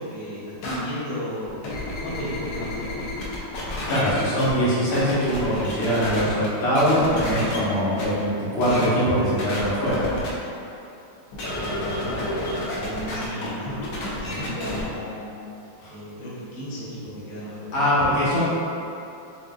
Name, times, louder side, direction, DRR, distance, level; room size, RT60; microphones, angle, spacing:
voice 1, 0.0-1.6 2.0-3.0 11.6-12.3 12.7-13.9 14.2-15.3 15.9-17.7 18.3-18.4, equal, 50° left, -10 dB, 1.3 m, -34 dB
sound 1, 0.6-0.8 1.4-4.5 4.9-6.5 6.7-7.6 8.0-8.1 8.6-8.9 9.4-10.3 11.3-14.8, left 1 dB, 65° left, 1.3 m, -30 dB
voice 2, 3.9-10.1 15.8-15.9 17.7-18.4, equal, 85° left, -9 dB, 2.0 m, -22 dB
7.3 x 2.5 x 2.3 m, 2.7 s
omnidirectional pair, 2.4 m